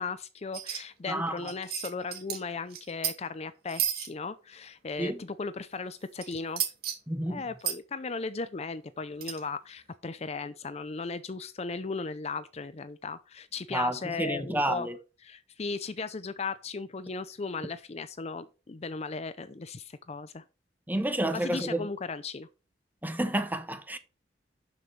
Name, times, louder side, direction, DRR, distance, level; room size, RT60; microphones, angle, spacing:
voice 1, 0.0-6.6 7.3-14.9 15.2-20.4 21.3-22.5, left 4 dB, 40° left, 0.5 m, -36 dB
sound 1, 0.5-0.8 1.1-1.2 1.4-2.4 2.7-3.1 3.7-4.1 6.2-6.9 7.6-7.8 9.2-9.4, right 10 dB, 60° right, 2.0 m, -32 dB
voice 2, 1.1-1.5 5.0-5.2 7.1-7.4 13.7-15.0 20.9-21.9 23.0-24.0, right 1 dB, 10° right, 1.1 m, -30 dB
11.5 x 6.2 x 3.2 m
head